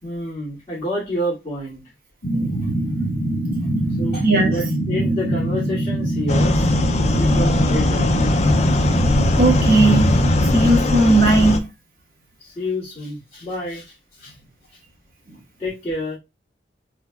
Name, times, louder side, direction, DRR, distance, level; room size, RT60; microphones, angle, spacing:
voice 1, 0.0-1.8 4.0-6.7 7.2-8.1 12.4-14.3 15.6-16.2, left 1 dB, 15° left, 2.5 m, -28 dB
sound 1, 2.2-10.8, right 1 dB, 65° left, 0.8 m, -23 dB
voice 2, 4.2-4.6 9.4-10.2 10.5-11.7, right 2 dB, 50° right, 1.2 m, -17 dB
sound 2, 6.3-11.6, left 2 dB, 35° left, 0.4 m, -19 dB
4.5 x 4.0 x 2.3 m
head